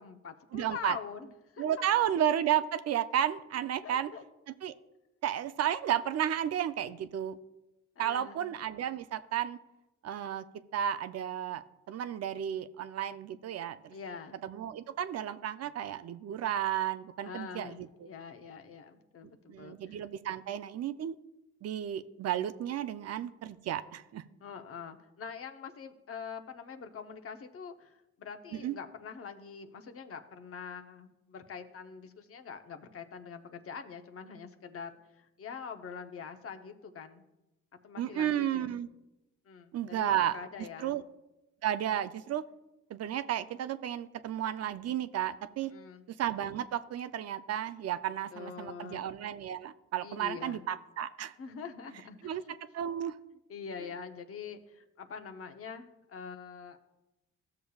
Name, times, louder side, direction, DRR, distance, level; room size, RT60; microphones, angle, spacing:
voice 1, 0.0-1.6 2.0-2.1 3.8-4.2 8.0-8.4 13.9-14.4 17.2-20.0 24.4-37.2 37.8-38.8 39.5-41.0 45.7-46.1 48.3-49.1 50.0-50.6 51.4-52.5 53.5-56.8, left 6 dB, 50° left, 7 dB, 0.8 m, -44 dB
voice 2, 0.5-1.0 1.6-4.1 4.6-4.7 5.2-7.4 8.0-9.6 10.0-10.4 10.7-13.9 14.4-18.1 19.5-21.1 21.6-24.2 28.5-28.7 38.0-38.9 39.7-40.4 40.8-41.0 41.6-42.4 42.9-45.7 46.2-51.3 52.2-52.4 52.7-53.2, right 10 dB, 55° right, 12 dB, 0.5 m, -33 dB
14.5 x 6.7 x 2.3 m, 0.97 s
cardioid pair, 90°, 30 cm